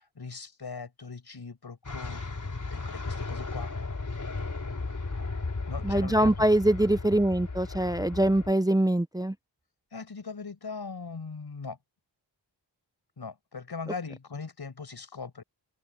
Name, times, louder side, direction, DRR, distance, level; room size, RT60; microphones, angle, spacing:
voice 1, 0.0-2.2 2.7-3.7 5.7-6.3 9.9-11.8 13.2-15.4, left 4 dB, 55° left, 6.8 m, -40 dB
sound 1, 1.8-8.5, left 3 dB, 40° left, 5.2 m, -35 dB
voice 2, 5.8-9.3, right 1 dB, 10° right, 0.7 m, -23 dB
cardioid pair, 60°, 45 cm